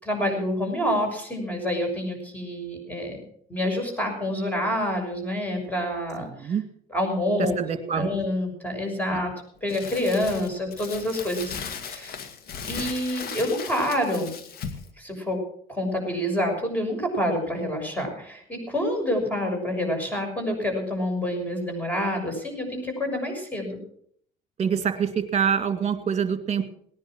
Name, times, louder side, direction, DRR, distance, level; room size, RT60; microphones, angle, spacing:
voice 1, 0.0-3.2 3.5-6.5 6.9-7.6 7.9-9.3 9.6-12.2 12.7-14.4 15.0-15.4 15.7-23.8, left 1 dB, 10° left, 3 dB, 6.3 m, -27 dB
voice 2, 6.2-6.6 7.4-8.1 9.1-9.2 24.6-26.7, right 7 dB, 40° right, 8 dB, 2.4 m, -26 dB
Crumpling crinkling, 9.7-14.9, left 6 dB, 65° left, 2.2 m, -37 dB
19.0 x 10.5 x 6.3 m, 0.65 s
cardioid pair, 110°, 17 cm